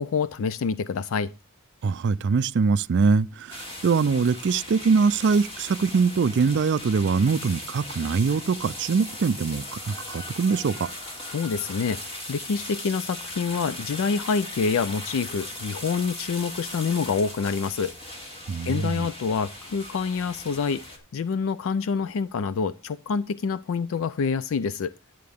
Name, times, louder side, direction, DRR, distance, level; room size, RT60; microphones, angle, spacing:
voice 1, 0.0-1.3 11.2-18.2 18.6-24.9, left 5 dB, 65° left, 0.4 m, -27 dB
voice 2, 1.8-10.9 18.5-19.1, right 5 dB, 50° right, 0.4 m, -23 dB
sound 1, 3.5-21.0, left 1 dB, 25° left, 2.5 m, -38 dB
11.5 x 7.6 x 3.5 m
head